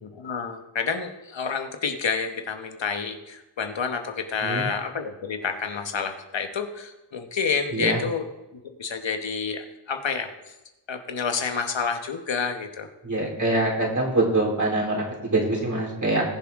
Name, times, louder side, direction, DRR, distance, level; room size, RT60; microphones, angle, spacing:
voice 1, 0.0-8.2 8.5-10.3 10.9-12.9, left 5 dB, 85° left, 7 dB, 1.2 m, -29 dB
voice 2, 13.0-16.2, right 2 dB, 40° right, -3 dB, 3.6 m, -24 dB
20.0 x 7.2 x 3.6 m, 1.0 s
wide cardioid pair, 65°, 44 cm